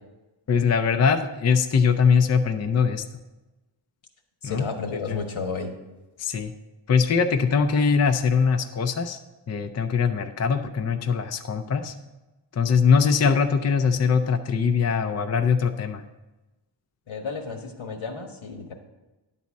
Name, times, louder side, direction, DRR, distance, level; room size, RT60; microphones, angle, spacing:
voice 1, 0.5-3.0 4.4-4.7 5.1-5.2 6.2-6.5 6.9-9.2 9.5-11.9 12.5-16.0, left 6 dB, 35° left, 7 dB, 0.4 m, -22 dB
voice 2, 4.4-5.7 17.1-18.7, left 4 dB, 75° left, 4 dB, 1.4 m, -32 dB
10.5 x 4.1 x 7.1 m, 1.1 s
wide cardioid pair, 140°, 47 cm